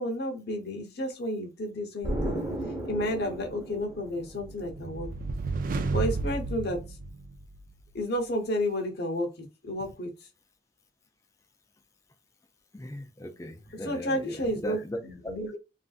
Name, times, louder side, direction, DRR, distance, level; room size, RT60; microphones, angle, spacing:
voice 1, 0.0-2.4 2.9-5.1 5.9-6.8 7.9-10.1 13.8-15.6, equal, 60° left, 0.8 m, -31 dB
Explosion, 2.0-4.7, right 1 dB, 15° right, 0.9 m, -34 dB
sound 1, 3.9-7.8, right 3 dB, 45° right, 0.3 m, -32 dB
voice 2, 12.7-15.0 15.2-15.3, left 1 dB, 15° left, 0.4 m, -38 dB
3.2 x 2.5 x 2.3 m
head